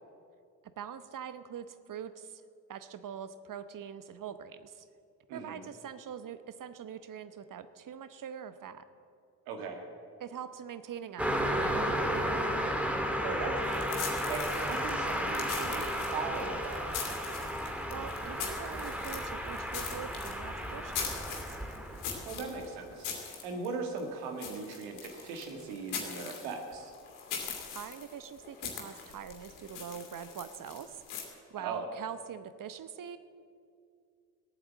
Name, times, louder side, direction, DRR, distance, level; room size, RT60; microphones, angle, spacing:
voice 1, 0.8-2.4 2.7-4.9 5.3-8.8 10.2-12.6 17.9-21.5 27.7-33.2, right 8 dB, 45° right, 12 dB, 1.0 m, -43 dB
voice 2, 5.3-5.6 9.5-9.8 13.2-17.3 22.3-26.9 31.6-31.9, right 4 dB, 75° right, 4 dB, 1.9 m, -39 dB
Car passing by, 11.2-22.6, equal, 5° right, 1.9 m, -33 dB
sound 1, 13.6-31.2, left 6 dB, 75° left, 2.4 m, -42 dB
16.5 x 8.9 x 7.5 m, 2.4 s
hypercardioid pair, 45°, 46 cm